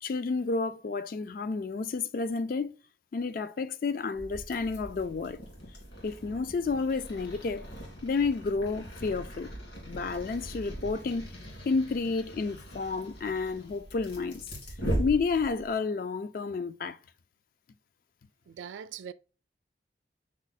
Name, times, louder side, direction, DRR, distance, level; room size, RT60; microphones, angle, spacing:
voice 1, 0.0-2.7 3.1-5.4 6.0-7.6 8.0-9.5 9.9-11.3 11.7-14.4 15.0-17.0, left 4 dB, 50° left, 0.3 m, -30 dB
sound 1, 4.1-15.7, equal, 75° left, 2.1 m, -40 dB
voice 2, 18.5-19.1, right 8 dB, 85° right, 0.3 m, -41 dB
6.2 x 2.1 x 4.0 m
head